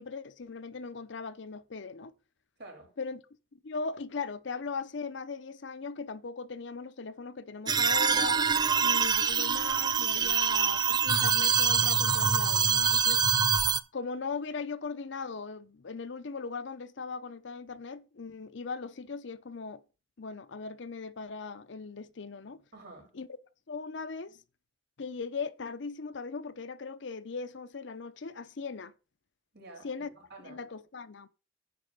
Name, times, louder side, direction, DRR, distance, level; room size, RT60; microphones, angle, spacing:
voice 1, 0.0-2.1 3.0-3.2 3.5-8.4 8.8-13.2 13.9-19.8 20.2-22.6 23.1-23.4 23.7-24.4 25.0-28.9 29.8-30.1 30.4-31.3, left 4 dB, 70° left, 0.7 m, -39 dB
voice 2, 2.6-2.9 10.1-10.7 22.7-23.1 29.5-29.9 30.2-30.6, right 2 dB, 60° right, 3.8 m, -49 dB
sound 1, 7.7-13.8, right 6 dB, 20° right, 0.4 m, -25 dB
9.7 x 4.1 x 6.5 m
head